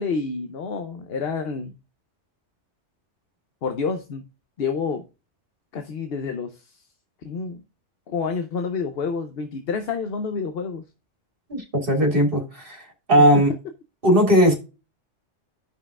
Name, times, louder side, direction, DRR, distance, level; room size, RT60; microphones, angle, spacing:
voice 1, 0.0-1.7 3.6-4.2 4.6-5.1 5.7-6.7 7.2-7.6 8.1-10.8, left 5 dB, 60° left, 0.9 m, -28 dB
voice 2, 11.5-12.8 13.1-13.5 14.0-14.6, equal, 45° right, 2.5 m, -18 dB
13.5 x 5.6 x 2.4 m
omnidirectional pair, 1.3 m